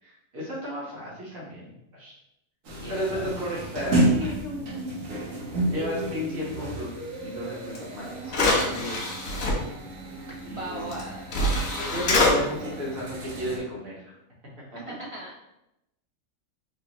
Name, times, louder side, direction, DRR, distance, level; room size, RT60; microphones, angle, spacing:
voice 1, 0.0-2.1 2.9-4.9 5.7-6.9 7.2-9.6 10.4-11.1 11.9-14.1 14.7-14.8, equal, 90° right, -5 dB, 1.8 m, -34 dB
sound 1, 2.6-13.6, right 1 dB, 75° right, 1.3 m, -32 dB
voice 2, 2.8-3.3 5.7-6.2 10.5-11.4 11.8-12.3 14.7-15.5, right 1 dB, 55° right, -5 dB, 0.3 m, -38 dB
sound 2, 7.7-7.8 8.3-9.5 10.9-11.0 11.3-12.3, left 2 dB, 85° left, 1.5 m, -24 dB
4.7 x 2.6 x 3.0 m, 0.87 s
omnidirectional pair, 1.4 m